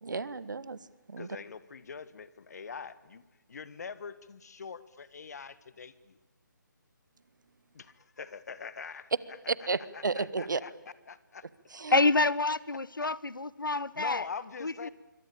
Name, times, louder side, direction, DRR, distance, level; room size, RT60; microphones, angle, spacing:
voice 1, 0.0-0.8 1.1-1.3 9.5-10.6 11.7-12.0, right 4 dB, 65° right, 18 dB, 1.5 m, -32 dB
voice 2, 1.2-3.2 3.5-6.2 7.7-9.1 9.9-10.7 11.1-11.4 13.0-13.1 14.0-14.9, left 5 dB, 50° left, 15 dB, 1.8 m, -43 dB
voice 3, 11.9-14.2 14.6-14.9, left 3 dB, 85° left, 20 dB, 1.3 m, -27 dB
27.0 x 24.0 x 8.9 m, 1.1 s
figure-of-eight pair, 150°, 11 cm